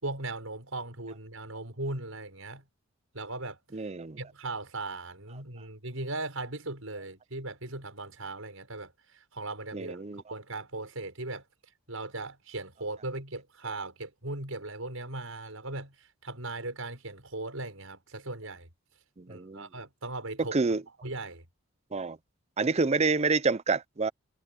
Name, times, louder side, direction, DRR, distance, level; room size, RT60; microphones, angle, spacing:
voice 1, 0.0-2.6 3.1-3.6 4.2-11.4 11.9-18.7 19.3-20.6 21.0-21.5, right 2 dB, 80° right, 6.1 m, -38 dB
voice 2, 3.7-4.1 9.7-10.2 19.2-19.7 20.4-20.8 21.9-22.2 22.6-24.1, right 4 dB, 30° right, 0.6 m, -28 dB
head